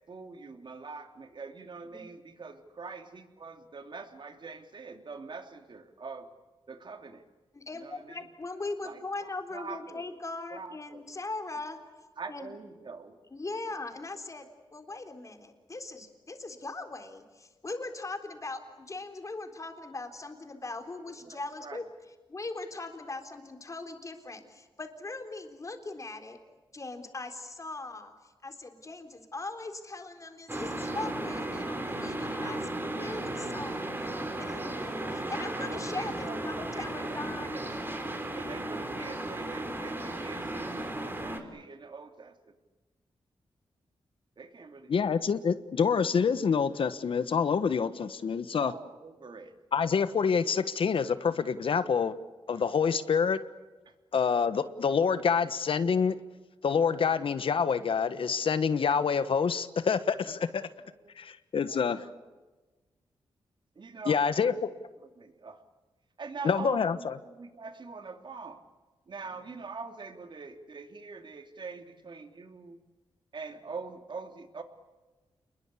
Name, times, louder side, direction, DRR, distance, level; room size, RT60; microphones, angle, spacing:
voice 1, 0.1-6.3 6.7-7.2 7.7-8.3 8.8-10.0 10.5-11.0 12.2-13.2 21.2-21.8 35.7-42.5 44.4-45.1 48.6-49.5 53.8-53.9 56.9-57.2 60.8-61.1 61.7-62.3 63.7-64.7 65.2-65.6 66.2-68.6 69.1-72.8 73.3-74.6, right 4 dB, 50° right, 6 dB, 3.0 m, -44 dB
voice 2, 7.5-11.8 12.3-12.5 13.3-21.9 22.3-26.4 26.7-32.7 32.9-37.6, left 3 dB, 30° left, 6 dB, 3.8 m, -40 dB
sound 1, 30.5-41.4, right 1 dB, 20° right, 3.8 m, -35 dB
voice 3, 44.9-48.7 49.7-52.2 52.5-53.4 54.1-56.1 56.6-60.7 61.2-62.0 64.1-64.5 66.4-67.2, left 6 dB, 65° left, 12 dB, 1.3 m, -27 dB
28.5 x 21.5 x 8.4 m, 1.2 s
cardioid pair, 85°, 10 cm